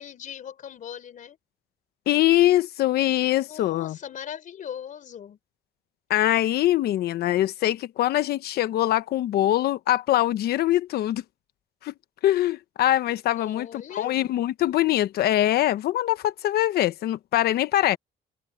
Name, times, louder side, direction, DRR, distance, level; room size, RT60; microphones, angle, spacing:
voice 1, 0.0-1.4 3.4-5.4 13.3-14.1, left 9 dB, 50° left, 4.1 m, -39 dB
voice 2, 2.1-4.0 6.1-11.2 11.8-11.9 12.2-18.0, left 14 dB, 70° left, 1.1 m, -23 dB
cardioid pair, 110°, 17 cm